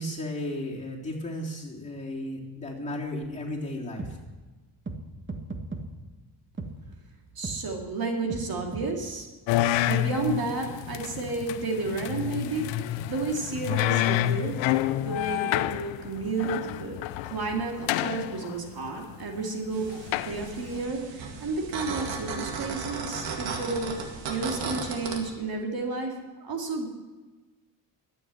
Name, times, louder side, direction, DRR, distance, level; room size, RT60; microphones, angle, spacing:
voice 1, 0.0-4.1, left 1 dB, 15° left, -3 dB, 3.4 m, -34 dB
sound 1, 4.0-4.1 4.9-5.0 5.3-5.8 6.6-6.7 7.4-7.6 8.3-8.4 8.7-8.9, right 3 dB, 25° right, 1.6 m, -35 dB
voice 2, 7.4-9.3 9.8-12.7 13.1-14.6 15.0-24.0 24.3-26.1 26.4-26.9, right 3 dB, 55° right, 2 dB, 2.4 m, -31 dB
sound 2, 9.5-20.8, left 14 dB, 85° left, 0.6 m, -29 dB
sound 3, 19.7-25.2, right 4 dB, 80° right, 2.1 m, -35 dB
12.5 x 8.7 x 7.7 m, 1.2 s
cardioid pair, 85°, 44 cm